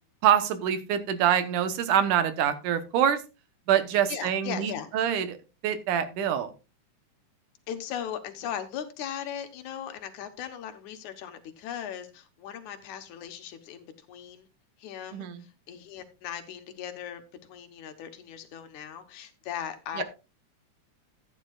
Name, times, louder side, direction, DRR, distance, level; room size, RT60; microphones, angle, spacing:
voice 1, 0.2-3.2 3.7-5.4 5.6-6.5 15.1-15.4 20.0-20.1, right 9 dB, 80° right, 11 dB, 2.6 m, -25 dB
voice 2, 4.1-4.9 7.7-14.5 14.8-20.0, left 9 dB, 75° left, 8 dB, 2.5 m, -38 dB
14.5 x 9.7 x 2.4 m, 0.28 s
omnidirectional pair, 3.5 m